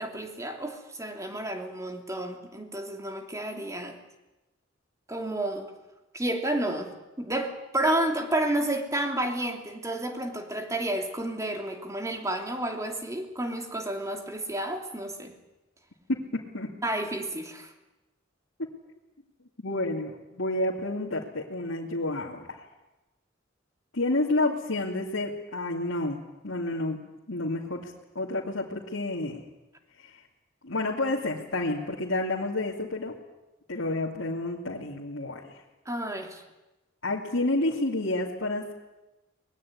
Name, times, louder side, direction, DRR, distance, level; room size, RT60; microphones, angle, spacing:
voice 1, 0.0-4.0 5.1-5.7 6.1-6.9 7.2-15.3 16.8-17.7 35.9-36.4, right 1 dB, 15° right, 4 dB, 2.9 m, -31 dB
voice 2, 16.1-16.7 19.6-22.6 23.9-27.0 27.3-29.4 30.0-30.2 30.6-33.1 33.7-35.6 37.0-38.7, left 2 dB, 85° left, -4 dB, 2.6 m, -30 dB
24.0 x 20.5 x 9.6 m, 1.0 s
head